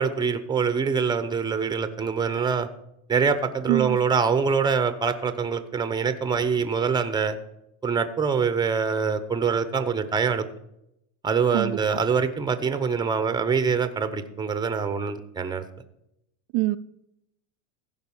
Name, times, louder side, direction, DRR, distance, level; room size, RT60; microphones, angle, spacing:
voice 1, 0.0-2.7 3.1-7.4 7.8-10.5 11.2-15.6, right 5 dB, 10° right, 0.8 m, -24 dB
voice 2, 11.5-12.0 16.5-16.8, right 19 dB, 60° right, 0.5 m, -25 dB
15.5 x 5.4 x 7.1 m
supercardioid pair, 130°, 48 cm